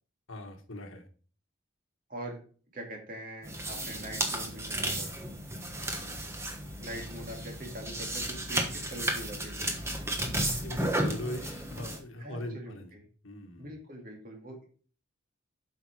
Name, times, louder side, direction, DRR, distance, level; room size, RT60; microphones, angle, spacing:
voice 1, 0.3-1.1 5.7-6.3 7.1-7.4 10.5-12.9 13.2-13.7, left 1 dB, 75° left, 4 dB, 1.5 m, -41 dB
voice 2, 2.1-2.4 2.7-5.1 6.8-9.9 12.2-13.1 13.6-14.7, right 1 dB, 40° right, 1 dB, 2.3 m, -43 dB
sound 1, 3.4-12.0, right 1 dB, 15° right, 1.2 m, -33 dB
7.8 x 5.8 x 4.8 m, 0.41 s
head